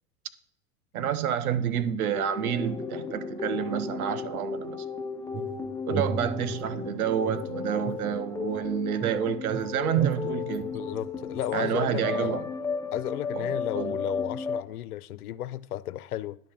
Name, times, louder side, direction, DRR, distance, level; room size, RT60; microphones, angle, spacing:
voice 1, 0.9-4.8 5.9-10.7 11.5-12.5 13.3-13.5 13.7-14.0, right 9 dB, 80° right, 0.9 m, -29 dB
sound 1, 2.1-14.6, left 5 dB, 10° left, 0.6 m, -34 dB
sound 2, 5.3-6.8 7.3-8.7 9.0-11.5, right 5 dB, 30° right, 0.8 m, -36 dB
voice 2, 10.7-12.4 12.9-16.4, left 13 dB, 90° left, 0.6 m, -33 dB
10.5 x 3.8 x 7.1 m
hypercardioid pair, 100°, 43 cm